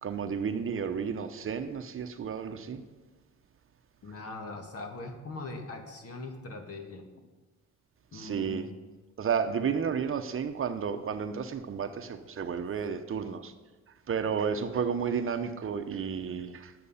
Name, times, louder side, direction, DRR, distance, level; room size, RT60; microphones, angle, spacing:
voice 1, 0.0-2.8 8.1-8.7 9.2-13.5 14.1-16.7, right 6 dB, 45° right, 8 dB, 0.8 m, -32 dB
voice 2, 4.0-7.0 8.1-8.8, left 2 dB, 50° left, 4 dB, 1.9 m, -41 dB
12.0 x 8.3 x 5.6 m, 1.2 s
cardioid pair, 90°, 30 cm